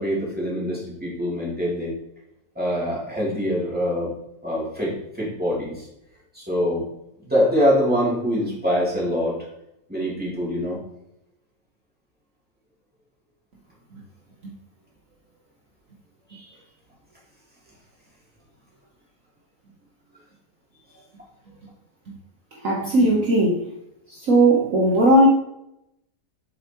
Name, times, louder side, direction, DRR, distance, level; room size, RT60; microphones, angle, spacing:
voice 1, 0.0-1.9 2.5-4.1 4.4-5.9 6.3-6.8 7.2-9.4 9.9-10.8 16.3-16.5, equal, 5° right, -6 dB, 2.9 m, -24 dB
voice 2, 22.6-23.6 24.2-25.3, right 1 dB, 55° right, -3 dB, 1.5 m, -17 dB
8.0 x 7.2 x 3.0 m, 0.81 s
omnidirectional pair, 1.8 m